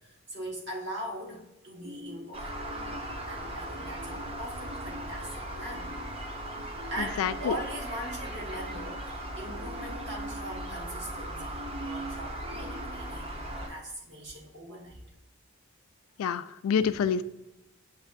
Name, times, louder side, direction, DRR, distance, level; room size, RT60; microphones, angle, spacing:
voice 1, 0.0-2.6 3.3-6.1 6.6-15.0 16.8-17.0, right 1 dB, 60° right, -2 dB, 1.4 m, -41 dB
sound 1, 1.8-13.7, equal, 90° right, 1.0 m, -45 dB
sound 2, 2.3-13.7, right 1 dB, 25° right, 0.6 m, -38 dB
voice 2, 7.2-7.5 16.2-17.2, left 7 dB, 85° left, 14 dB, 0.3 m, -27 dB
7.3 x 2.8 x 2.5 m, 0.94 s
head